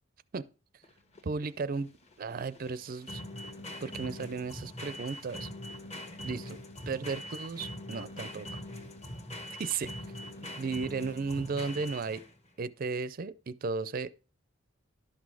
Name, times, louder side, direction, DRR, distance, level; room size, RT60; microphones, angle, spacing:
sound 1, 0.8-12.5, left 1 dB, 35° left, 1.3 m, -43 dB
voice 1, 1.2-1.9 2.2-3.2 3.8-5.5 6.2-6.6 6.9-8.6 9.6-9.9 10.6-12.2 12.6-14.1, right 4 dB, 45° right, 0.4 m, -35 dB
11.5 x 6.2 x 4.7 m
head